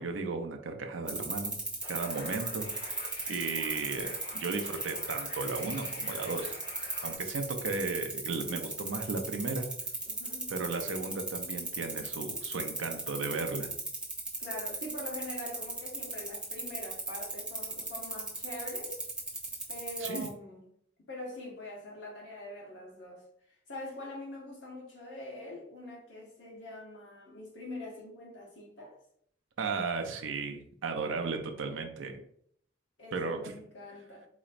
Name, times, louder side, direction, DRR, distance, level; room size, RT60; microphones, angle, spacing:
voice 1, 0.0-1.6 1.9-6.6 7.0-9.7 10.5-13.7 20.0-20.3 29.6-32.1 33.1-33.5, right 4 dB, 90° right, 0.6 m, -35 dB
sound 1, 1.1-20.3, right 3 dB, 5° right, 0.5 m, -36 dB
sound 2, 1.8-7.2, left 2 dB, 55° left, 1.2 m, -47 dB
voice 2, 10.1-10.5 14.4-19.0 19.7-20.6 21.1-23.2 23.7-28.9 33.0-34.3, left 1 dB, 70° left, 1.3 m, -43 dB
4.2 x 3.0 x 2.5 m
head